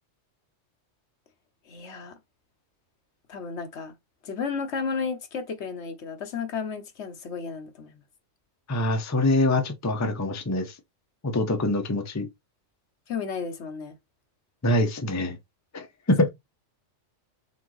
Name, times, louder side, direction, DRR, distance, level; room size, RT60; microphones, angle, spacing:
voice 1, 1.7-2.2 3.3-4.0 4.2-8.0 13.1-14.0, left 5 dB, 65° left, 1.1 m, -33 dB
voice 2, 8.7-10.7 11.2-12.3 14.6-15.4 15.7-16.3, left 1 dB, 20° left, 0.6 m, -24 dB
4.4 x 3.6 x 3.1 m
omnidirectional pair, 1.3 m